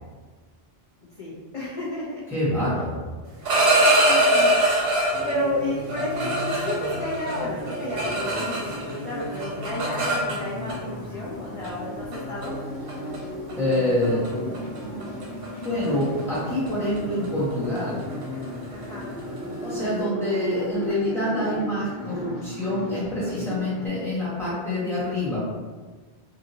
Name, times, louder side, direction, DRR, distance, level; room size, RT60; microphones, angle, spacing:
voice 1, 1.2-2.2 4.1-4.5 4.8-12.6 18.7-19.1, left 1 dB, 40° left, -7 dB, 0.5 m, -32 dB
voice 2, 2.3-3.0 13.6-14.2 15.6-18.0 19.6-25.5, left 1 dB, 5° left, -11 dB, 1.2 m, -26 dB
sound 1, 3.3-5.4 5.9-8.9 9.2-10.7 11.6-11.8 12.1-12.5 12.9-13.2 13.5-13.7 14.0-14.3 14.5-19.9, right 1 dB, 65° right, 0.9 m, -24 dB
sound 2, 5.1-23.9, equal, 80° left, 0.9 m, -35 dB
2.7 x 2.6 x 2.6 m, 1.3 s
omnidirectional pair, 1.1 m